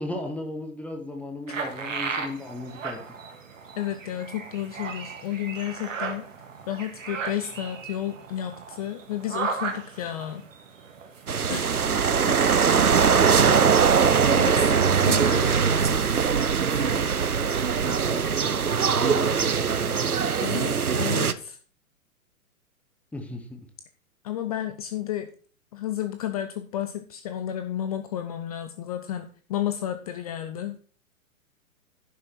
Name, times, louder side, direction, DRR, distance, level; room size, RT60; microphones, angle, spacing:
voice 1, 0.0-3.0 11.8-13.7 17.8-20.4 23.1-23.7, left 2 dB, 5° left, 3 dB, 0.9 m, -37 dB
sound 1, 1.5-15.8, right 5 dB, 60° right, 1.9 m, -37 dB
voice 2, 3.8-6.3 6.7-10.5 11.5-11.9 14.3-15.7 20.4-21.6 24.2-25.3 25.7-30.8, left 11 dB, 25° left, 9 dB, 0.6 m, -32 dB
sound 2, 11.3-21.3, right 6 dB, 90° right, 0.7 m, -21 dB
11.0 x 6.5 x 4.5 m, 0.42 s
figure-of-eight pair, 115°, 43 cm